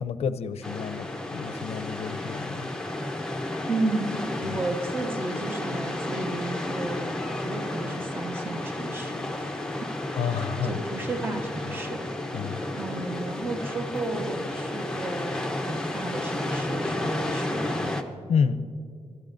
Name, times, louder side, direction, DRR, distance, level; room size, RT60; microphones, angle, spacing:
voice 1, 0.0-2.7 4.4-4.6 10.2-10.7 12.3-12.6 18.3-18.6, left 6 dB, 75° left, 12 dB, 0.6 m, -29 dB
sound 1, 0.6-18.0, left 1 dB, 5° left, 0.8 m, -32 dB
voice 2, 3.7-9.9 10.3-12.0 12.7-17.8, right 2 dB, 20° right, 3 dB, 1.1 m, -33 dB
25.5 x 12.0 x 2.6 m, 2.2 s
wide cardioid pair, 135°, 11 cm